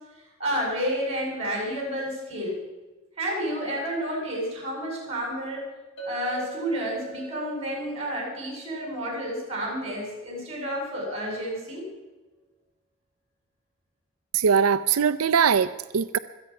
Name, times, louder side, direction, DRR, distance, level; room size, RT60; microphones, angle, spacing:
voice 1, 0.4-2.5 3.2-5.7 6.0-11.9, equal, 30° right, -1 dB, 7.4 m, -30 dB
Chink clink, 6.0-10.4, right 2 dB, 70° left, 3.8 m, -43 dB
voice 2, 14.3-16.2, right 6 dB, 90° right, 12 dB, 0.5 m, -21 dB
24.5 x 8.9 x 5.9 m, 1.2 s
head